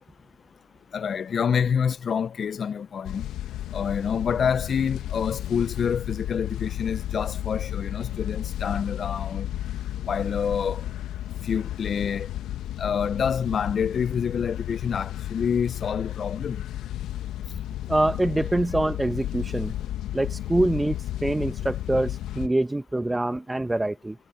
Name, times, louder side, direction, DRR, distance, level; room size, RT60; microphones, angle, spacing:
voice 1, 0.9-3.3 3.7-9.5 10.1-10.8 11.4-12.3 12.8-16.6, left 7 dB, 45° left, 0.7 m, -27 dB
sound 1, 3.0-22.5, left 13 dB, 70° left, 1.9 m, -33 dB
voice 2, 17.9-19.7 20.1-24.2, right 1 dB, 10° right, 1.2 m, -25 dB
supercardioid pair, 75°, 0 cm